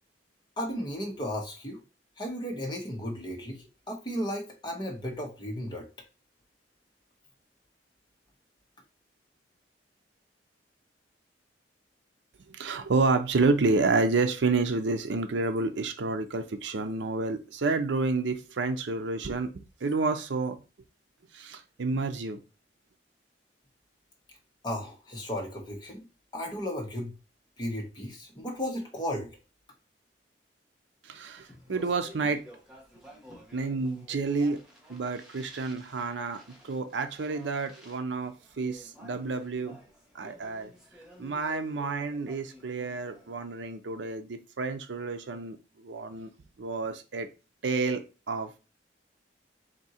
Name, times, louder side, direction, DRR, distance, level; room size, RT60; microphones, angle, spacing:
voice 1, 0.6-1.8 2.2-5.8 24.6-26.0 26.3-27.1 27.6-29.3, equal, 25° left, 1.1 m, -34 dB
voice 2, 12.5-20.6 21.3-22.4 31.0-32.5 33.5-34.6 34.9-39.8 40.1-40.7 41.2-46.3 46.6-47.3 47.6-48.6, right 3 dB, 75° right, 0.6 m, -29 dB
Speech, 31.2-43.6, equal, 5° right, 1.1 m, -53 dB
3.7 x 2.7 x 4.2 m
head